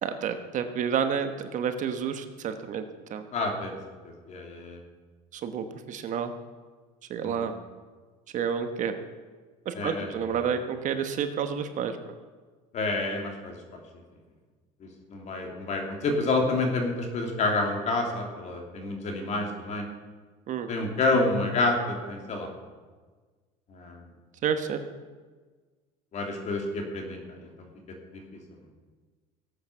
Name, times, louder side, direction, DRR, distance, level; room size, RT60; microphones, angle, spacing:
voice 1, 0.0-2.8 3.1-3.2 5.3-6.3 7.1-7.5 8.3-8.9 9.6-12.0 20.5-20.7 24.4-24.8, right 7 dB, 45° right, 8 dB, 1.2 m, -29 dB
voice 2, 3.3-3.8 4.0-4.8 7.2-7.5 9.7-10.4 12.7-13.8 14.8-19.9 20.7-22.5 23.7-24.0 26.1-27.5 28.1-28.2, left 2 dB, 40° left, 3 dB, 3.0 m, -29 dB
17.0 x 8.6 x 6.7 m, 1.4 s
supercardioid pair, 120°, 17 cm